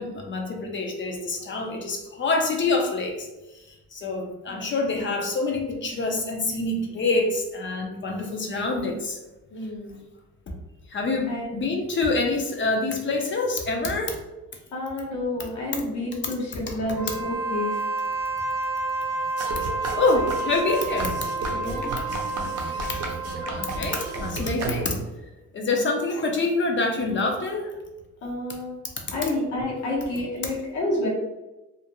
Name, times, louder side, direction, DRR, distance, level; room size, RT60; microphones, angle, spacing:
voice 1, 0.0-3.3 3.5-9.2 10.9-14.2 19.1-19.3 19.6-21.3 21.9-23.1 23.4-25.0 25.5-27.7, left 3 dB, 40° left, 2 dB, 0.6 m, -26 dB
voice 2, 4.5-5.0 9.5-10.0 11.3-11.6 14.7-17.8 21.5-21.9 25.5-25.9 28.2-28.8 29.1-31.1, left 1 dB, 75° left, -4 dB, 1.0 m, -30 dB
Wind instrument woodwind instrument, 16.9-24.4, right 3 dB, 10° right, 0.7 m, -30 dB
sound 1, 19.4-25.2, right 3 dB, 55° right, 0.6 m, -33 dB
2.5 x 2.1 x 2.9 m, 1.0 s
cardioid pair, 90°, 30 cm